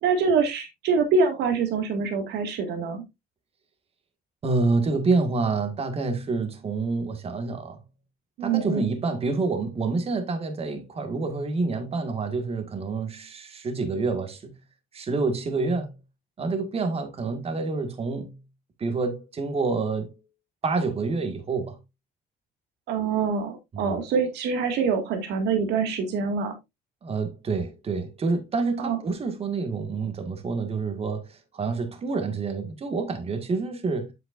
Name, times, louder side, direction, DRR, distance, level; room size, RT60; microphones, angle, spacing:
voice 1, 0.0-3.0 8.4-8.9 22.9-26.5 28.8-29.0, right 5 dB, 80° right, 2.0 m, -25 dB
voice 2, 4.4-7.8 8.4-14.5 14.9-15.9 16.4-18.4 18.8-20.1 20.6-21.8 23.7-24.0 27.0-34.1, right 3 dB, 35° right, 1.8 m, -27 dB
8.2 x 7.7 x 2.5 m
cardioid pair, 110°, 17 cm